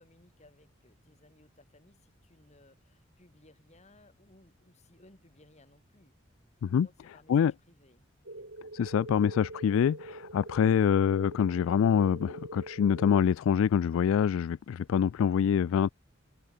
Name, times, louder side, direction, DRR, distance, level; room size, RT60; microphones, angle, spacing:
voice 1, 0.0-6.2 6.7-8.1 8.4-8.5, left 2 dB, 35° left, 3.5 m, -61 dB
sound 1, 8.2-13.2, right 2 dB, 65° right, 3.0 m, -44 dB
voice 2, 8.7-15.9, left 8 dB, 90° left, 0.3 m, -25 dB
head